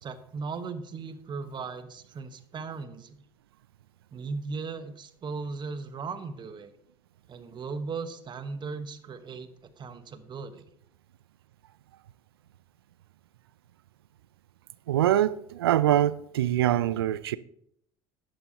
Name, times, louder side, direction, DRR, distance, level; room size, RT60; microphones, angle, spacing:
voice 1, 0.0-3.2 4.1-6.7 7.3-10.7, right 4 dB, 40° right, 1.2 m, -37 dB
voice 2, 14.9-17.4, right 12 dB, 85° right, 0.4 m, -24 dB
11.0 x 11.0 x 2.9 m
hypercardioid pair, 70°, 12 cm